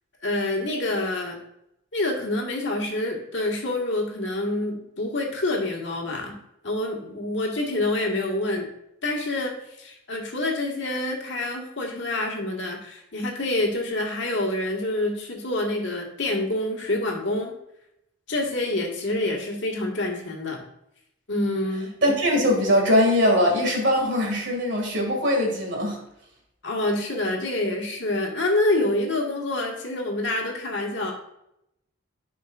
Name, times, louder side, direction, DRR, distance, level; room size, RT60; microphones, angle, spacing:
voice 1, 0.2-1.4 1.9-6.4 6.6-8.7 9.0-17.6 18.3-20.6 21.3-21.9 26.6-31.1, left 2 dB, 65° left, 0 dB, 1.7 m, -27 dB
voice 2, 22.0-26.0, left 1 dB, 60° right, 0 dB, 2.2 m, -21 dB
11.5 x 5.4 x 2.5 m, 0.80 s
head